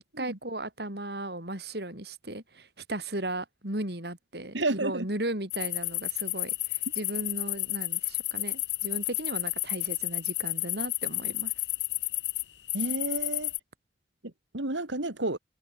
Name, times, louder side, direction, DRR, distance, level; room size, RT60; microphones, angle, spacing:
voice 1, 0.2-11.5, right 1 dB, 60° right, 5.3 m, -36 dB
voice 2, 4.5-5.1 12.7-13.5 14.5-15.4, right 2 dB, 85° right, 2.9 m, -30 dB
sound 1, 5.5-13.6, left 18 dB, 75° left, 2.8 m, -31 dB
head